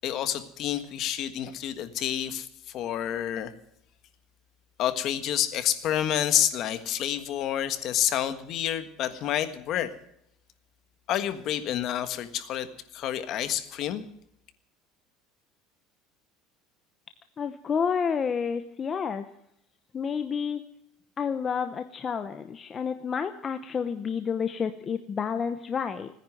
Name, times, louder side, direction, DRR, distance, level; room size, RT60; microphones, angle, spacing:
voice 1, 0.0-2.5 2.7-3.5 4.8-9.9 11.1-12.7 12.9-14.0, left 11 dB, 45° left, 11 dB, 1.5 m, -28 dB
voice 2, 17.4-19.2 19.9-20.6 21.2-26.1, left 6 dB, 25° left, 9 dB, 0.8 m, -30 dB
18.0 x 10.0 x 7.7 m, 0.74 s
cardioid pair, 145°, 0 cm